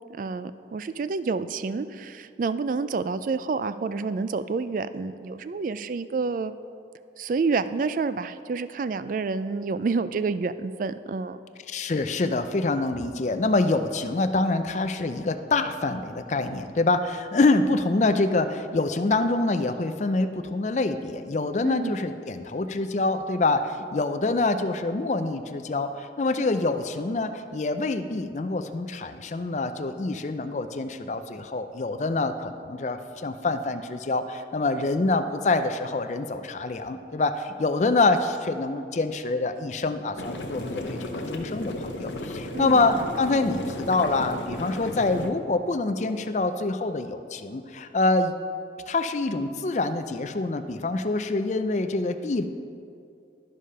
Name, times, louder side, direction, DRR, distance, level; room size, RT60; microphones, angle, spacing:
voice 1, 0.2-6.5 7.2-11.4 21.6-22.0 42.5-42.7, right 4 dB, 45° right, 13 dB, 0.3 m, -28 dB
voice 2, 11.7-48.3 48.9-52.5, left 3 dB, 40° left, 9 dB, 0.4 m, -26 dB
sound 1, 40.2-45.3, left 1 dB, 90° left, 0.8 m, -34 dB
12.5 x 4.9 x 5.5 m, 2.4 s
head